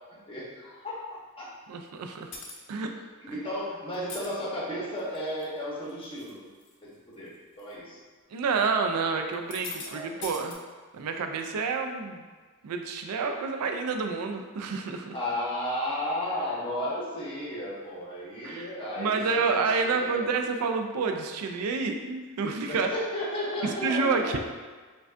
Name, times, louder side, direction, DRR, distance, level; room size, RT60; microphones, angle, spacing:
voice 1, 0.3-1.5 3.3-6.5 7.1-7.3 7.6-8.0 9.8-10.3 15.1-20.3 20.6-20.7 22.7-24.4, left 1 dB, 25° left, -6 dB, 0.9 m, -34 dB
voice 2, 1.7-2.3 2.7-2.9 3.3-3.4 8.3-10.6 10.9-12.2 12.6-15.1 18.4-18.7 19.0-22.9 23.6-24.4, right 4 dB, 85° right, 5 dB, 0.4 m, -29 dB
sound 1, 2.3-2.7 3.9-4.3 5.0-5.4 5.9-6.3 6.6-6.7 7.6-7.7 9.3-9.9 10.2-10.5, left 4 dB, 55° left, 0.5 m, -40 dB
4.9 x 2.3 x 2.4 m, 1.4 s
head